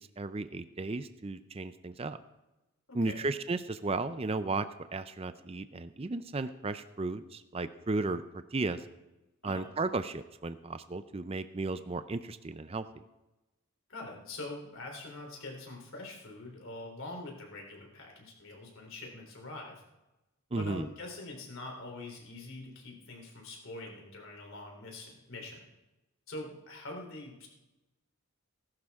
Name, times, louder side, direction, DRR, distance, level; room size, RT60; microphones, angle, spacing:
voice 1, 0.0-2.2 2.9-8.2 8.5-8.8 9.4-12.9 20.5-20.9, right 3 dB, 25° right, 12 dB, 0.4 m, -34 dB
voice 2, 2.9-3.2 9.4-9.7 13.9-19.8 20.6-25.7 26.3-27.5, left 2 dB, 60° left, 1 dB, 3.5 m, -44 dB
19.5 x 11.5 x 3.6 m, 1.0 s
head